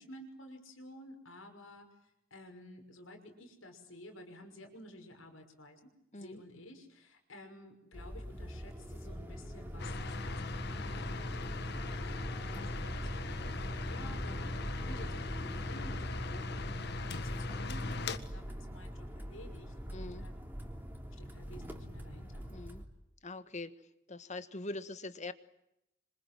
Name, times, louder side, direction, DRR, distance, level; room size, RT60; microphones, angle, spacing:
voice 1, 0.0-5.9 6.1-20.3 21.2-22.5, left 1 dB, 85° left, 5 dB, 5.9 m, -53 dB
sound 1, 7.9-22.8, equal, 10° right, 3.5 m, -42 dB
sound 2, 9.8-18.2, left 3 dB, 55° left, 1.6 m, -39 dB
voice 2, 19.9-20.3 22.5-22.8 23.2-23.7 24.1-25.3, left 2 dB, 35° left, 12 dB, 1.6 m, -43 dB
27.0 x 26.5 x 7.6 m, 0.83 s
head